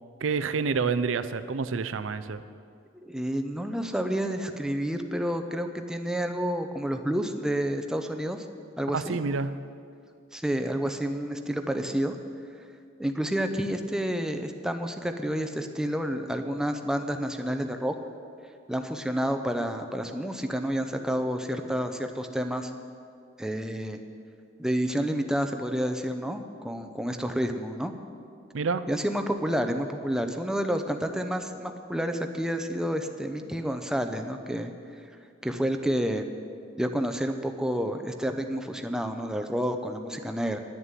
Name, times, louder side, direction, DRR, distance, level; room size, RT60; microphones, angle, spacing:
voice 1, 0.2-2.4 8.9-9.5 28.5-28.8, right 5 dB, 80° right, 13 dB, 0.5 m, -28 dB
voice 2, 2.9-8.4 8.8-9.2 10.3-12.2 13.0-17.9 18.7-22.7 23.4-24.0 24.6-27.9 28.9-34.7 35.4-36.2 36.8-40.6, equal, 5° right, 6 dB, 0.6 m, -29 dB
10.5 x 6.9 x 9.1 m, 2.3 s
head